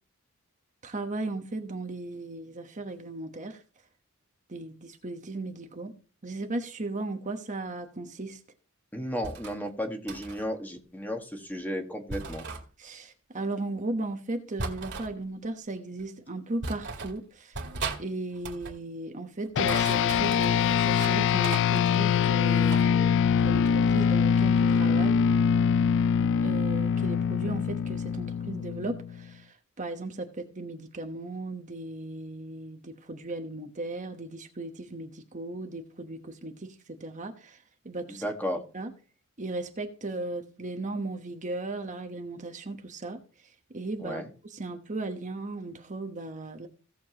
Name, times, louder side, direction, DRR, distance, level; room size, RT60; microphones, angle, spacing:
voice 1, 0.8-3.6 4.5-5.9 6.2-8.4 12.8-17.6 18.0-25.1 26.4-37.6 37.8-38.3 38.7-38.9 39.4-43.2 43.7-44.2 44.5-46.7, right 2 dB, 35° right, 1.1 m, -36 dB
voice 2, 8.9-12.5 38.2-38.6 44.0-44.3, equal, 10° left, 1.5 m, -33 dB
sound 1, 9.2-9.6 10.1-10.4 12.1-12.6 14.6-15.1 16.0-16.1 16.6-17.2 17.5-18.0 18.3-18.8 19.5-21.2 21.4-22.9, right 4 dB, 60° right, 2.1 m, -37 dB
sound 2, 19.6-29.3, left 7 dB, 60° left, 0.4 m, -24 dB
17.0 x 7.0 x 2.9 m
head